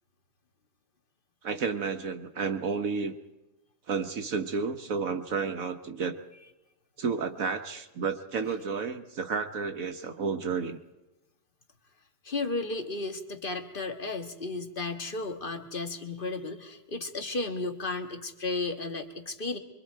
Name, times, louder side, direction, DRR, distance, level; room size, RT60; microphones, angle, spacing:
voice 1, 1.4-3.1 3.9-6.2 7.0-10.8, right 5 dB, 60° right, 6 dB, 1.3 m, -31 dB
voice 2, 12.2-19.6, left 3 dB, 35° left, 5 dB, 1.7 m, -34 dB
25.5 x 24.0 x 4.6 m, 1.0 s
omnidirectional pair, 1.7 m